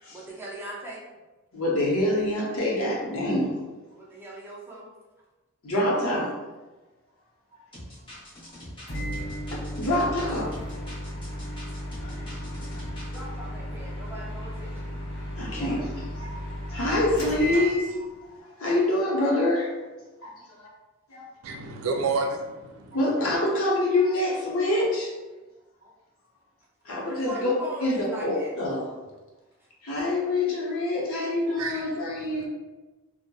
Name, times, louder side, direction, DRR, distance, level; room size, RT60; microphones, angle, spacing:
voice 1, 0.1-1.1 4.0-4.9 13.0-14.9 27.0-28.6, right 1 dB, 10° right, -5 dB, 0.4 m, -39 dB
voice 2, 1.5-3.5 5.6-6.3 9.5-10.5 12.0-12.5 15.4-18.1 18.6-19.7 20.2-20.3 20.6-20.7 21.1-21.3 22.9-25.1 26.8-27.5 27.8-28.8 29.8-32.5, left 1 dB, 75° left, -3 dB, 0.7 m, -26 dB
sound 1, 7.7-13.2, equal, 25° left, 0.8 m, -44 dB
Microwave oven, 8.9-18.3, equal, 50° left, 0.9 m, -34 dB
voice 3, 21.4-23.0 31.6-31.9 32.2-32.5, right 3 dB, 75° right, 2 dB, 0.4 m, -30 dB
2.9 x 2.0 x 2.2 m, 1.2 s
head